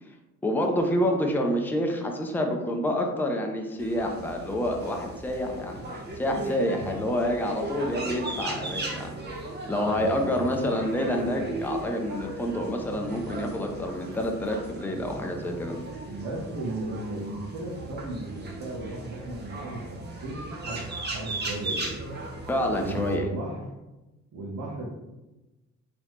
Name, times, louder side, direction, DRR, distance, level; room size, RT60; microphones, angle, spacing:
voice 1, 0.4-15.8 22.5-23.3, left 1 dB, 5° left, 2 dB, 0.5 m, -28 dB
sound 1, 3.8-23.2, right 2 dB, 35° right, 0.8 m, -37 dB
voice 2, 6.7-7.0 9.9-10.5 16.0-21.9 22.8-23.7 24.3-24.9, right 2 dB, 65° right, -5 dB, 1.0 m, -35 dB
3.8 x 2.9 x 3.1 m, 1.1 s
cardioid pair, 90°, 30 cm